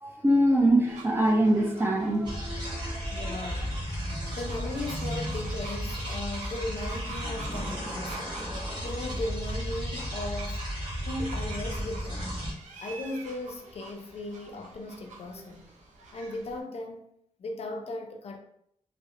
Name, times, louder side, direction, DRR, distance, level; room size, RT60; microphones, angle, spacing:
voice 1, 0.0-3.5 4.1-4.4, right 1 dB, 20° right, 0.4 m, -25 dB
sound 1, 0.8-16.6, right 2 dB, 85° right, 0.5 m, -46 dB
sound 2, 2.2-12.5, equal, 40° right, 0.9 m, -34 dB
voice 2, 3.1-3.7 4.3-10.7 11.1-12.4 12.8-15.7 16.1-17.1 17.4-18.4, left 2 dB, 60° left, 0.4 m, -37 dB
2.7 x 2.0 x 2.4 m
wide cardioid pair, 120°, 12 cm